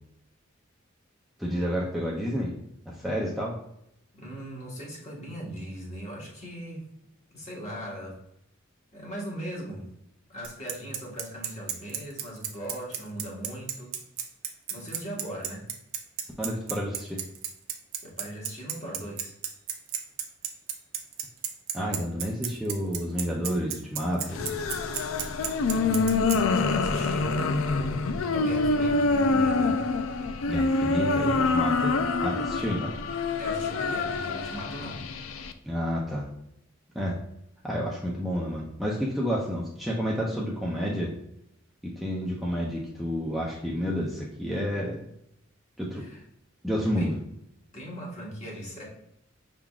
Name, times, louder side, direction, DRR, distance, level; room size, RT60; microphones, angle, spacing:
voice 1, 1.4-2.5 2.9-3.6 16.4-17.2 21.7-24.6 30.5-32.9 35.7-36.3 36.9-37.2 37.6-41.1 41.8-45.0 45.8-46.0 46.6-47.1, equal, ahead, -5 dB, 0.5 m, -30 dB
voice 2, 4.1-6.8 7.3-8.2 8.9-9.8 10.3-13.9 14.7-15.7 18.0-19.3 25.7-28.0 28.3-29.8 32.6-32.7 33.4-35.0 45.9-46.2 47.0-47.1 47.7-48.8, right 1 dB, 35° left, -4 dB, 1.4 m, -39 dB
Bicycle, 10.4-26.4, right 9 dB, 85° right, 0.6 m, -32 dB
sound 1, 24.3-35.5, left 3 dB, 80° left, 0.4 m, -26 dB
5.8 x 3.7 x 2.4 m, 0.79 s
head